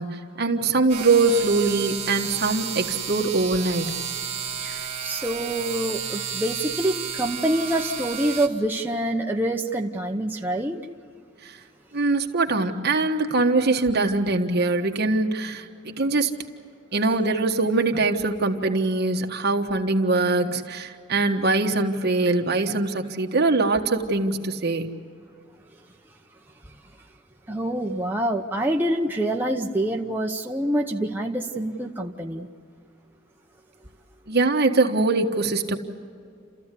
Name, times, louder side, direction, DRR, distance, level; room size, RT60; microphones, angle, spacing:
voice 1, 0.0-4.0 11.9-16.3 16.9-25.0 34.3-35.8, right 3 dB, 55° right, 3 dB, 1.5 m, -22 dB
sound 1, 0.9-8.5, right 7 dB, 30° right, 2.3 m, -32 dB
voice 2, 4.6-10.8 27.5-32.5, right 1 dB, 10° right, 0 dB, 0.9 m, -26 dB
30.0 x 14.5 x 8.4 m, 2.3 s
head